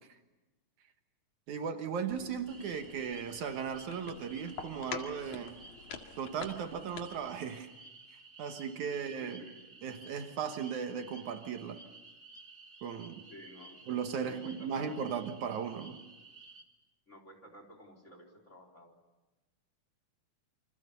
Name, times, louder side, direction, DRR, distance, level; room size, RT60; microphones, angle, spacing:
voice 1, 1.5-5.6 6.2-7.7 8.1-9.4 9.8-11.8 12.8-13.2 13.9-16.0, right 7 dB, 70° right, 7 dB, 2.7 m, -37 dB
voice 2, 2.0-2.3 8.9-9.6 13.3-13.8 14.2-15.0 17.1-19.0, equal, 20° left, 4 dB, 4.2 m, -53 dB
sound 1, 2.1-7.3, left 6 dB, 70° left, 3.4 m, -47 dB
sound 2, 2.5-16.6, right 3 dB, 25° right, 2.4 m, -54 dB
29.0 x 26.0 x 6.9 m, 1.1 s
omnidirectional pair, 3.6 m